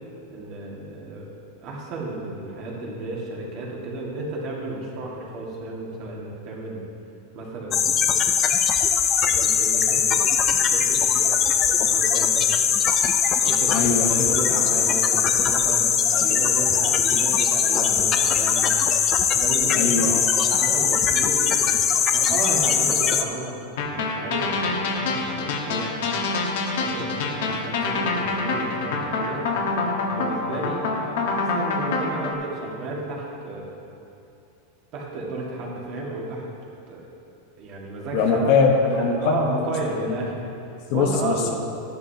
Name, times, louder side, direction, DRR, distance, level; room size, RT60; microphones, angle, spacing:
voice 1, 0.3-1.3 1.6-6.8 7.3-8.3 9.2-12.6 13.4-18.8 19.3-20.0 20.5-23.5 23.8-25.9 26.8-29.7 30.1-33.7 34.9-36.5 36.9-37.0 37.6-38.7 39.0-41.4, right 2 dB, 35° right, -3 dB, 1.8 m, -33 dB
sound 1, 7.7-23.2, left 7 dB, 20° left, 0.4 m, -21 dB
voice 2, 13.7-14.1 14.5-14.6 16.1-16.4 19.7-20.8 38.1-39.5 40.0-40.1 40.9-41.5, left 4 dB, 40° left, 1 dB, 1.1 m, -22 dB
sound 2, 23.8-32.3, left 3 dB, 65° left, 1.4 m, -26 dB
13.0 x 11.0 x 2.8 m, 2.7 s
supercardioid pair, 175°, 0 cm